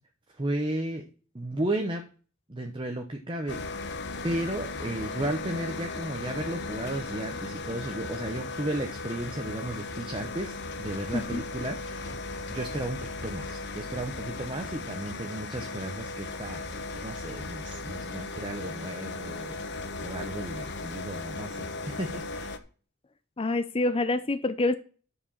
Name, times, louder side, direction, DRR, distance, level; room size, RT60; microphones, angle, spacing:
voice 1, 0.3-1.0 1.3-2.0 2.5-3.9 4.2-12.2 12.5-16.6 17.0-22.5, right 1 dB, 25° right, 0.9 m, -34 dB
sound 1, 3.5-22.6, left 3 dB, 55° left, 1.0 m, -37 dB
voice 2, 23.4-24.7, left 2 dB, 25° left, 0.5 m, -27 dB
10.5 x 5.0 x 7.2 m
head